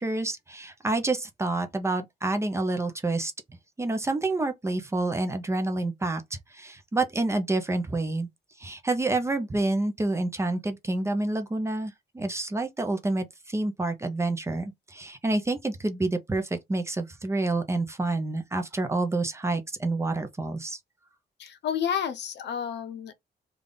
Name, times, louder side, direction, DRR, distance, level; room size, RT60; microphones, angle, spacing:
voice 1, 0.0-3.3 3.8-8.3 8.6-20.8, right 2 dB, 15° right, 0.5 m, -28 dB
voice 2, 21.4-23.1, left 8 dB, 75° left, 0.6 m, -30 dB
3.5 x 2.3 x 3.8 m
wide cardioid pair, 175°, 18 cm